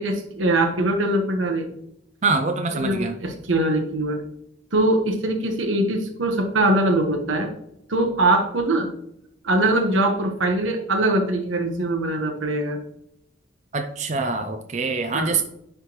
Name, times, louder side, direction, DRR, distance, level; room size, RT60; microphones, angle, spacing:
voice 1, 0.0-1.7 2.7-4.2 4.7-7.5 7.9-8.9 9.4-12.8 15.1-15.4, right 1 dB, 85° right, 4 dB, 1.1 m, -22 dB
voice 2, 2.2-3.2 13.7-15.4, right 4 dB, 35° right, 5 dB, 0.4 m, -24 dB
9.8 x 3.4 x 3.0 m, 0.78 s
head